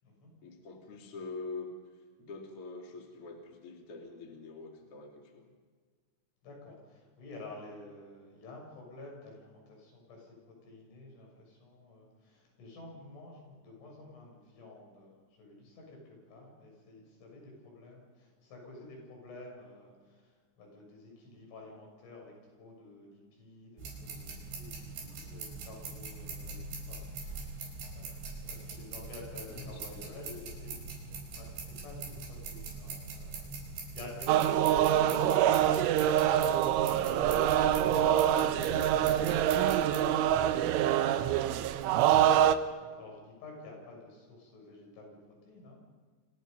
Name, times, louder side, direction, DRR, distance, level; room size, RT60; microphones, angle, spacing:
voice 1, 0.4-1.7 2.2-5.5 29.5-30.8 31.1-31.2 38.7-38.9, left 4 dB, 35° left, 1 dB, 3.0 m, -45 dB
voice 2, 6.4-15.1 15.4-30.7 31.3-35.1 36.0-39.9 40.2-45.8, left 2 dB, 75° left, 0 dB, 9.4 m, -51 dB
sound 1, 23.8-40.0, right 3 dB, 70° right, 7.1 m, -43 dB
sound 2, 34.3-42.6, right 11 dB, 85° right, 3.4 m, -25 dB
30.0 x 26.0 x 5.4 m, 1.5 s
omnidirectional pair, 5.5 m